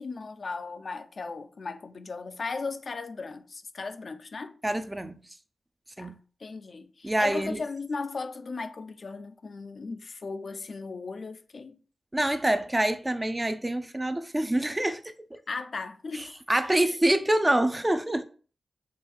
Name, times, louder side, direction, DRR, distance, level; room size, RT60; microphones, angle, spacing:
voice 1, 0.0-4.6 6.0-6.1 6.4-11.8 15.5-16.4, left 4 dB, 55° left, 0.4 m, -37 dB
voice 2, 4.6-5.2 6.0-6.2 7.0-7.6 12.1-15.4 16.2-18.2, right 1 dB, 15° right, 0.4 m, -26 dB
4.4 x 2.3 x 3.2 m
cardioid pair, 65°, 0 cm